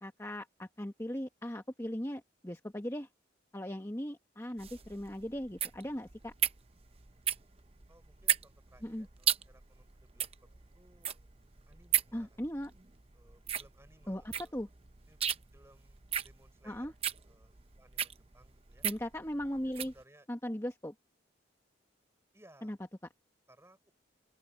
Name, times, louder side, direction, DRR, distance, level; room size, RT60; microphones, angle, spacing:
voice 1, 0.0-3.1 3.5-6.3 8.8-9.1 12.1-12.7 14.1-14.7 16.6-16.9 18.8-19.9 20.3-20.9 22.6-22.8, equal, 15° left, 1.2 m, -38 dB
sound 1, 4.6-20.0, right 9 dB, 30° right, 0.7 m, -35 dB
voice 2, 7.9-10.3 10.7-11.2 11.7-12.4 13.1-14.5 15.0-15.2 15.5-16.9 17.3-18.9 19.5-20.3 22.3-22.8 23.5-23.8, right 1 dB, 15° right, 6.2 m, -63 dB
open air
head